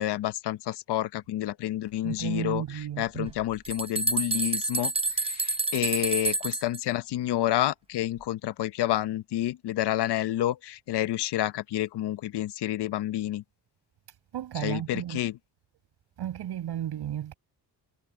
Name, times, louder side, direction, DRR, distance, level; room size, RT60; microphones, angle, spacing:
voice 1, 0.0-4.9 5.3-13.4 14.6-15.3, left 13 dB, 80° left, 1.1 m, -29 dB
voice 2, 2.0-3.3 14.1-15.2 16.2-17.3, right 11 dB, 80° right, 6.6 m, -34 dB
sound 1, 3.3-6.8, right 3 dB, 15° right, 0.8 m, -28 dB
cardioid pair, 105°, 40 cm